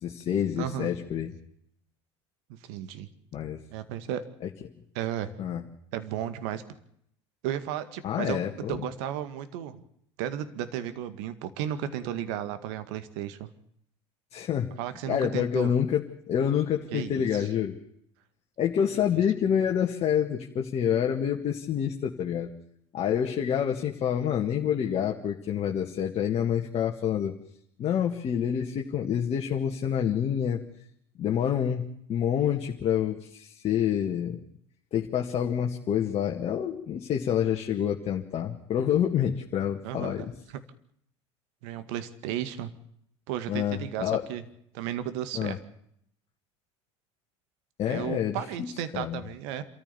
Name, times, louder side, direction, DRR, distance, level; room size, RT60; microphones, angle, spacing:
voice 1, 0.0-1.3 3.3-3.6 5.4-5.6 8.0-8.9 14.3-14.7 15.1-17.7 18.6-22.5 22.9-27.3 27.8-30.6 31.2-34.4 34.9-40.3 43.5-44.3 45.3-45.6 47.8-48.7 48.9-49.2, left 9 dB, 40° left, 1 dB, 2.1 m, -27 dB
voice 2, 0.6-0.9 2.6-3.1 3.7-4.2 4.9-5.3 5.9-6.6 7.4-8.4 8.7-9.8 10.2-13.5 14.8-15.7 16.9-17.5 18.9-19.2 39.8-40.3 41.6-42.7 43.3-44.4 44.7-45.6 47.9-49.6, right 11 dB, 65° right, 12 dB, 2.0 m, -34 dB
27.0 x 14.0 x 7.0 m, 0.71 s
hypercardioid pair, 75°, 15 cm